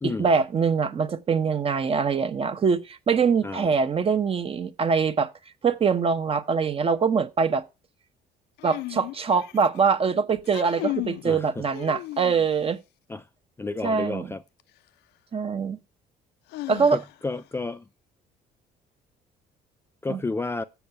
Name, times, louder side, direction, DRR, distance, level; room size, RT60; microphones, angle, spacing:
voice 1, 0.0-5.3 5.6-7.6 8.6-12.8 13.8-14.3 15.3-15.8 16.7-17.0 20.1-20.2, right 5 dB, 35° right, 0.8 m, -23 dB
sound 1, 8.6-9.8 10.4-11.3 11.7-12.6 14.6-14.7 16.5-17.4, left 17 dB, 80° left, 0.5 m, -35 dB
voice 2, 11.2-11.6 13.1-13.3 13.6-14.4 16.9-17.8 20.0-20.6, left 3 dB, 15° left, 0.4 m, -31 dB
7.1 x 6.8 x 5.8 m
cardioid pair, 110°, 17 cm